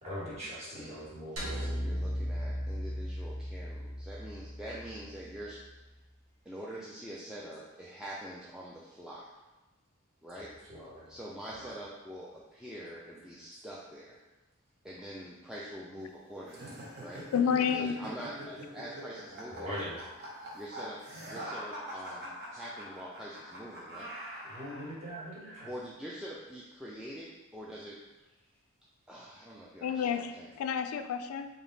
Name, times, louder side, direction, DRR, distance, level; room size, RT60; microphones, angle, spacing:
voice 1, 0.0-1.7 10.4-11.1 11.5-11.7 19.5-20.0 22.5-22.6 24.4-25.7, equal, 30° right, -8 dB, 1.4 m, -42 dB
voice 2, 0.7-5.6 6.5-9.3 10.2-10.5 11.1-14.2 14.8-17.3 17.7-19.8 20.5-21.0 21.3-24.1 25.7-28.0 29.1-30.5, equal, 5° right, -6 dB, 0.3 m, -45 dB
sound 1, 1.4-5.7, equal, 70° right, 1.1 m, -37 dB
sound 2, 16.5-24.9, equal, 50° right, 0.9 m, -44 dB
voice 3, 17.3-17.9 29.8-30.3 30.6-31.5, left 7 dB, 90° left, 8 dB, 0.3 m, -29 dB
3.4 x 2.7 x 3.9 m, 1.1 s
head